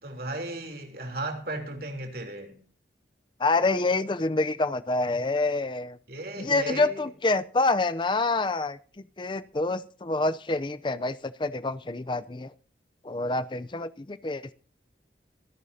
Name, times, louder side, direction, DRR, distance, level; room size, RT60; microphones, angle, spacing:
voice 1, 0.0-2.6 6.1-7.1, right 2 dB, 60° right, 3.3 m, -35 dB
voice 2, 3.4-6.0 6.4-8.8 9.2-12.5 13.0-14.5, left 3 dB, 25° left, 0.5 m, -27 dB
26.0 x 11.5 x 2.8 m
head